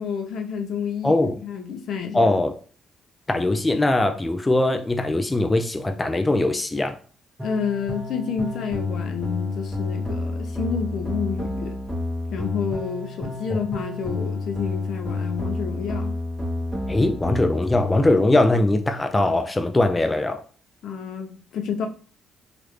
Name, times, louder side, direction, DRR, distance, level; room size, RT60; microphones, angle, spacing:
voice 1, 0.0-2.3 7.4-11.7 12.3-16.2 20.8-21.9, left 6 dB, 70° left, 0.5 m, -29 dB
voice 2, 1.0-1.4 2.1-2.5 3.3-7.0 16.9-20.4, left 2 dB, 20° left, 0.3 m, -21 dB
sound 1, 7.4-18.0, left 2 dB, 10° right, 1.1 m, -29 dB
3.1 x 2.4 x 3.1 m
cardioid pair, 90°, 0 cm